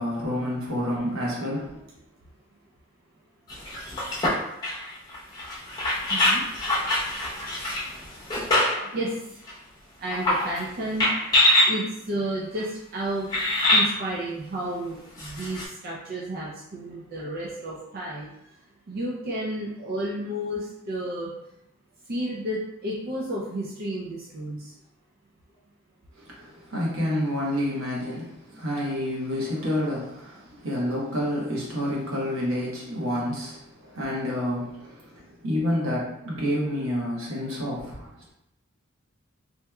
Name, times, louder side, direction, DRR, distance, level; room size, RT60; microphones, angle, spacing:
voice 1, 0.0-1.8 26.2-38.3, left 1 dB, 80° right, -4 dB, 1.1 m, -29 dB
sound 1, 3.5-8.9 9.5-9.6 10.1-10.6 11.0-11.7 12.6-12.7 13.3-13.9 15.2-15.6, left 1 dB, 20° left, 0.8 m, -24 dB
voice 2, 6.1-6.4 8.9-9.1 10.0-11.1 11.6-18.3 18.9-21.3 22.1-24.6, right 1 dB, 45° right, -4 dB, 0.4 m, -32 dB
3.3 x 2.9 x 2.3 m, 0.83 s
head